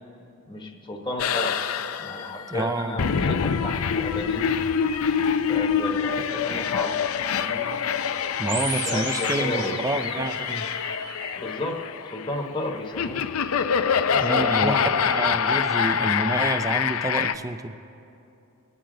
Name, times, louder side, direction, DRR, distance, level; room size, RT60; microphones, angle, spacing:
voice 1, 0.5-1.6 2.0-4.6 5.5-7.0 7.3-7.7 8.5-9.8 11.3-11.8 12.1-13.3 14.1-15.2, left 1 dB, 20° left, 0 dB, 1.0 m, -33 dB
sound 1, 1.2-17.3, left 7 dB, 85° left, 0.5 m, -25 dB
voice 2, 2.5-3.0 8.4-10.7 14.2-17.8, right 2 dB, 15° right, 11 dB, 0.4 m, -28 dB
sound 2, 8.5-11.5, right 5 dB, 55° right, 1.3 m, -36 dB
24.0 x 9.3 x 3.8 m, 2.7 s
head